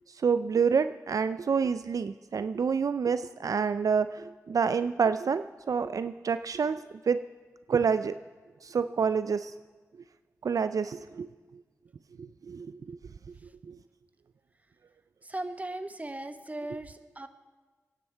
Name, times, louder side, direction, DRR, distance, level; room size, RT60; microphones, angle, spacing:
voice 1, 0.2-7.2 7.7-8.2 8.6-9.5 10.4-11.3 12.2-13.0 13.7-13.8, right 6 dB, 70° right, 12 dB, 0.4 m, -28 dB
voice 2, 15.2-17.3, right 1 dB, 25° right, 9 dB, 1.1 m, -38 dB
25.0 x 9.9 x 4.5 m, 1.3 s
cardioid pair, 50°, 6 cm